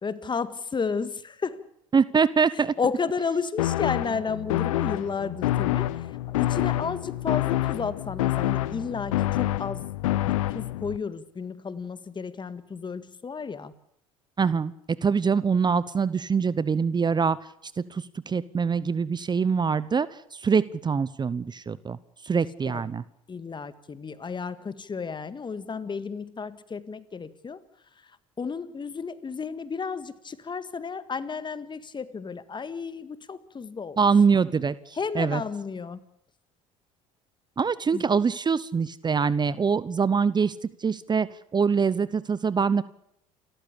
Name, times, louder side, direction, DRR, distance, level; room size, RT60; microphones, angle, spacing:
voice 1, 0.0-1.6 2.8-5.9 6.3-9.9 10.2-13.7 22.7-22.8 23.3-27.6 28.0-28.1 28.4-34.0 34.9-36.0 37.9-38.0, left 5 dB, 25° left, 14 dB, 1.8 m, -32 dB
voice 2, 1.9-2.7 14.4-14.7 15.0-17.4 17.9-22.0 22.2-23.0 34.0-35.4 37.6-40.5 40.8-41.3 41.5-42.8, right 5 dB, 25° right, 18 dB, 0.9 m, -24 dB
sound 1, 3.6-11.0, left 15 dB, 80° left, 0.9 m, -27 dB
29.0 x 14.0 x 8.5 m, 0.75 s
hypercardioid pair, 70°, 17 cm